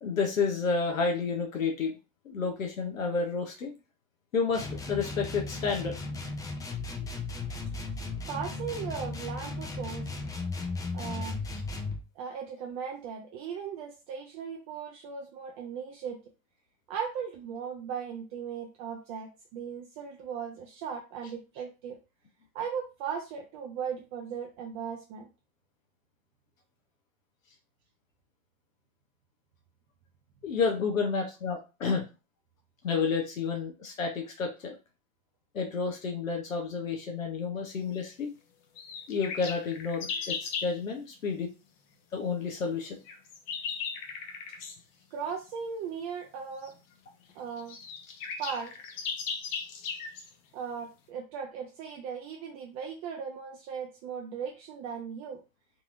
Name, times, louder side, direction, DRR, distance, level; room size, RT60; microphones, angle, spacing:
voice 1, 0.0-1.9 2.3-3.7 4.3-5.9 11.5-11.6 30.4-32.0 32.8-34.7 35.5-38.3 39.1-41.5 42.1-43.0, left 5 dB, 75° left, 2 dB, 0.8 m, -30 dB
sound 1, 4.5-12.0, left 3 dB, 10° left, 0.5 m, -36 dB
voice 2, 8.3-10.1 10.9-11.4 12.2-16.2 16.9-22.0 22.5-25.3 45.1-46.7 47.3-47.8 48.4-48.7 50.5-55.4, right 7 dB, 40° right, 1 dB, 0.7 m, -37 dB
sound 2, 38.8-40.7 42.8-44.8 46.6-46.7 47.3-47.4 47.6-50.3, left 6 dB, 40° left, 0.8 m, -37 dB
3.9 x 2.8 x 2.4 m, 0.30 s
figure-of-eight pair, 85°, 40 cm